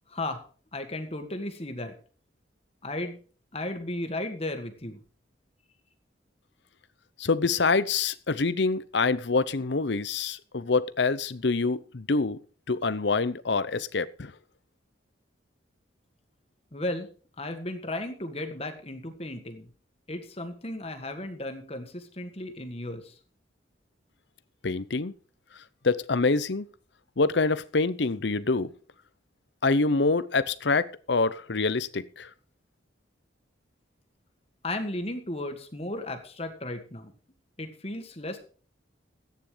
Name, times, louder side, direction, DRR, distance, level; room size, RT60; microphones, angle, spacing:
voice 1, 0.1-0.4 0.7-1.9 2.8-3.2 3.5-5.0 16.7-17.1 17.4-19.7 20.1-23.1 34.6-37.1 37.6-38.4, left 1 dB, 30° left, 7 dB, 1.7 m, -35 dB
voice 2, 7.2-12.4 12.7-14.3 24.6-25.1 25.8-26.7 27.2-28.7 29.6-32.3, left 3 dB, 65° left, 15 dB, 0.8 m, -26 dB
14.5 x 9.5 x 5.0 m, 0.42 s
head